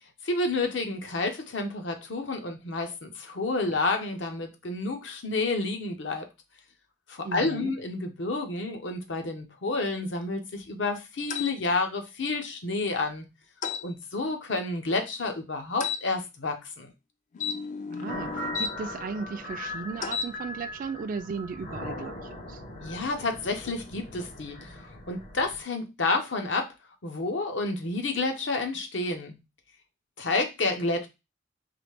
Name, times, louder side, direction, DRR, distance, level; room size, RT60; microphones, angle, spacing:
voice 1, 0.2-6.3 7.1-13.3 13.8-16.9 22.8-26.7 27.0-29.3 30.2-31.1, left 3 dB, 70° left, 0.9 m, -30 dB
voice 2, 7.2-7.7 17.9-22.6, right 5 dB, 45° right, 0.3 m, -36 dB
sound 1, 11.3-11.6 13.6-13.8 15.8-16.0 17.3-18.7 20.0-20.3, left 6 dB, 40° left, 0.3 m, -32 dB
sound 2, 18.1-25.6, left 1 dB, 55° left, 1.3 m, -40 dB
4.0 x 3.2 x 3.3 m
head